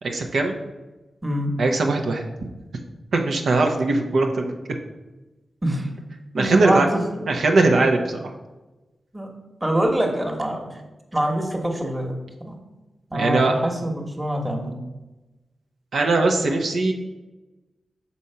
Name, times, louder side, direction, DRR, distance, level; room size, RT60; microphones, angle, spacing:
voice 1, 0.0-0.5 1.6-2.2 3.1-4.5 6.3-6.9 7.3-8.3 13.1-13.5 15.9-16.9, right 3 dB, 80° right, 2 dB, 0.8 m, -20 dB
voice 2, 1.2-1.5 5.6-5.9 6.4-7.3 9.1-9.3 9.6-10.8 11.1-12.6 13.1-14.7, right 1 dB, 15° right, 2 dB, 1.2 m, -25 dB
6.3 x 4.2 x 5.6 m, 1.1 s
wide cardioid pair, 95°, 0 cm